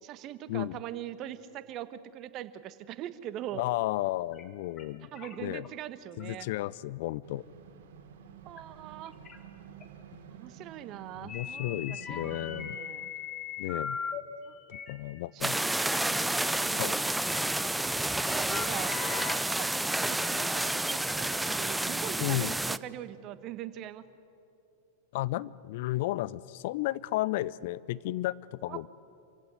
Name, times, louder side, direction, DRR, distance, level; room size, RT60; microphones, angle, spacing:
voice 1, 0.0-3.6 5.1-6.5 8.4-9.2 10.3-13.1 14.4-14.6 15.3-15.7 16.0-17.1 18.3-19.0 19.5-24.0 28.7-28.9, right 12 dB, 40° right, 13 dB, 1.3 m, -42 dB
voice 2, 3.5-5.1 5.4-5.6 6.2-7.4 11.2-12.8 13.6-14.0 14.7-15.6 16.8-17.0 22.2-22.5 25.1-28.9, left 16 dB, 60° left, 20 dB, 0.5 m, -33 dB
sound 1, 4.3-4.4 4.8-4.9 5.2-5.7 6.2-6.4 6.9-7.0 8.6-8.7 9.1-9.4 9.8-9.9 11.3-14.2 14.6-14.9 15.7-15.8 16.0-16.1 17.3-17.7 18.2-19.4, left 7 dB, 30° left, 2.9 m, -39 dB
sound 2, 7.2-12.7, right 7 dB, 65° right, 2.9 m, -50 dB
sound 3, 15.4-22.8, right 1 dB, 5° right, 0.6 m, -30 dB
27.5 x 16.0 x 9.6 m, 2.6 s
hypercardioid pair, 100°, 0 cm